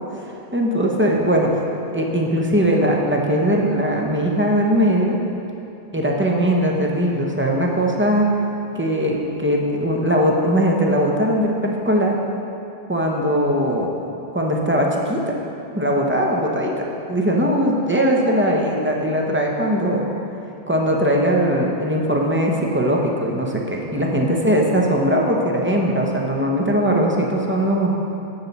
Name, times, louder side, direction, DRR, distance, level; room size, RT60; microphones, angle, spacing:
voice 1, 0.5-1.6 1.9-5.1 5.9-8.3 8.7-12.1 12.9-13.9 14.3-15.3 15.7-20.1 20.7-27.9, equal, 15° right, -1 dB, 0.5 m, -20 dB
8.1 x 7.0 x 4.0 m, 2.9 s
omnidirectional pair, 1.2 m